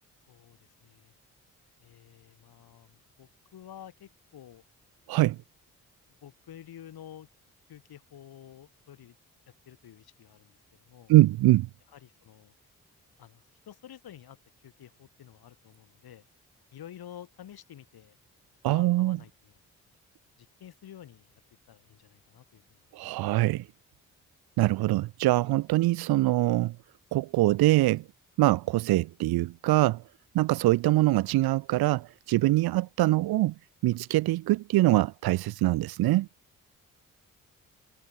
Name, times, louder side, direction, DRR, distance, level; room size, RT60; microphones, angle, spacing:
voice 1, 0.3-1.1 1.8-4.6 6.2-7.3 7.7-9.2 9.6-11.1 11.9-12.5 13.2-16.2 16.7-18.2 18.7-19.6 20.4-21.4 21.7-23.2, left 10 dB, 70° left, 2.9 m, -50 dB
voice 2, 5.1-5.4 11.1-11.7 18.6-19.2 22.9-23.7 24.6-26.8 27.1-28.0 28.4-30.0 30.3-33.5 33.8-36.3, right 17 dB, 70° right, 0.6 m, -23 dB
hypercardioid pair, 40°, 39 cm